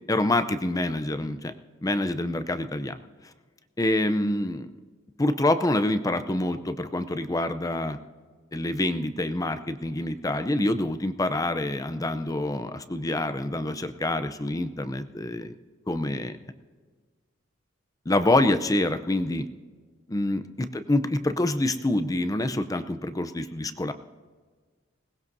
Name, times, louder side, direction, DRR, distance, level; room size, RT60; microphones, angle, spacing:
voice 1, 0.1-1.5 1.8-3.0 3.8-4.7 5.2-8.0 8.5-15.6 15.9-16.4 18.1-19.5 20.1-23.9, left 1 dB, 20° left, 10 dB, 0.6 m, -26 dB
21.5 x 19.0 x 2.7 m, 1.5 s
head